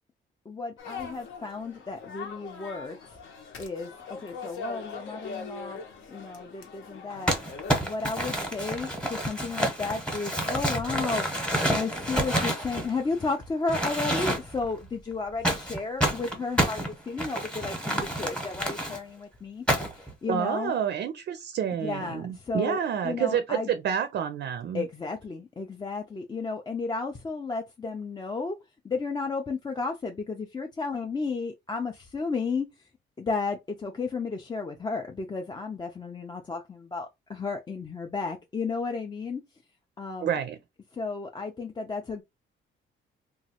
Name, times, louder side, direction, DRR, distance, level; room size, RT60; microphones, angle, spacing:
voice 1, 0.5-3.2 3.6-5.8 6.1-7.3 7.8-11.4 11.7-19.6 19.9-20.7 21.8-23.7 24.7-28.6 28.8-32.9 33.2-39.4 40.0-40.3 40.9-42.2, left 4 dB, 20° left, 0.4 m, -33 dB
sound 1, 0.8-7.8, left 5 dB, 70° left, 0.9 m, -41 dB
Crumpling crinkling, 7.3-13.3 13.7-14.7 15.4-19.0 19.7-20.1, equal, 5° left, 0.9 m, -28 dB
voice 2, 20.3-24.8 40.2-40.6, right 8 dB, 55° right, 0.4 m, -29 dB
3.0 x 2.3 x 2.8 m
cardioid pair, 110°, 21 cm